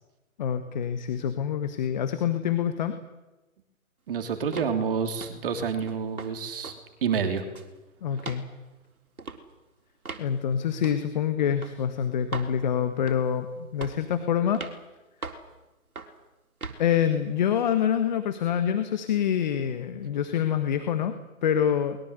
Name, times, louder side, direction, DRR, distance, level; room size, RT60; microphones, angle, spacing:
voice 1, 0.4-2.9 8.0-8.5 10.2-14.6 16.8-22.0, left 9 dB, 30° left, 10 dB, 1.5 m, -26 dB
voice 2, 4.1-6.7 7.0-7.4, right 6 dB, 40° right, 6 dB, 3.1 m, -28 dB
sound 1, 4.5-4.8 5.2-5.4 5.9-6.3 6.6-6.8 7.1-7.7 8.2-8.4 9.2-9.4 10.0-10.3 10.8-11.0 11.6-11.7 12.3-12.5 13.1-13.4 13.8-14.1 14.5-14.8 15.2-15.5 16.0-16.2 16.6-16.8, right 4 dB, 80° right, 3.9 m, -38 dB
23.5 x 21.5 x 8.2 m, 1.1 s
figure-of-eight pair, 145°, 42 cm